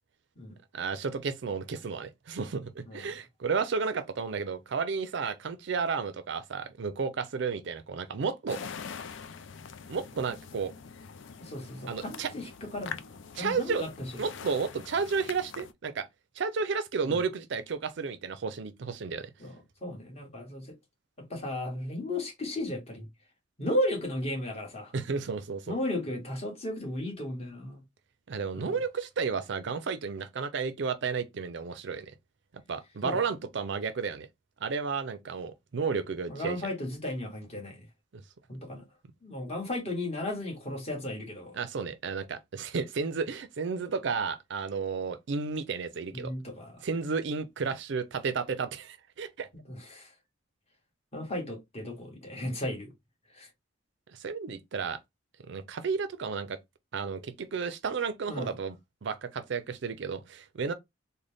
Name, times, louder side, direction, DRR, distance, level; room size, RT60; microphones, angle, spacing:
voice 1, 0.7-8.6 9.9-10.7 11.9-12.3 13.3-13.8 14.2-16.1 16.4-19.3 24.9-25.7 28.3-32.1 32.7-34.3 34.6-36.6 38.1-38.2 41.6-46.3 46.8-49.5 54.1-55.0 55.4-56.6 56.9-58.8 59.0-60.7, right 5 dB, 65° right, 0.5 m, -32 dB
sound 1, 8.5-15.7, left 6 dB, 70° left, 0.4 m, -44 dB
voice 2, 11.4-14.1 17.0-17.2 19.4-19.5 19.8-20.7 21.3-23.1 23.6-24.9 25.7-27.8 28.5-28.8 33.0-33.2 36.3-37.8 38.5-38.8 39.2-41.6 46.1-46.8 49.7-50.1 51.1-52.9 53.3-53.5 58.3-58.5, left 1 dB, 35° left, 1.5 m, -35 dB
3.9 x 2.1 x 3.4 m
head